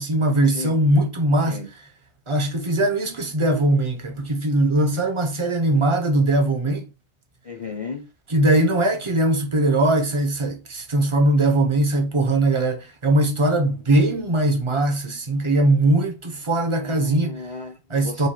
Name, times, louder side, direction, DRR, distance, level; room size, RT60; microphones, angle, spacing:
voice 1, 0.0-1.6 2.3-6.9 8.3-17.4 17.9-18.3, right 1 dB, 30° right, 0.6 m, -20 dB
voice 2, 7.4-8.1 16.7-18.3, left 4 dB, 35° left, 0.7 m, -35 dB
4.8 x 2.3 x 4.3 m
omnidirectional pair, 1.4 m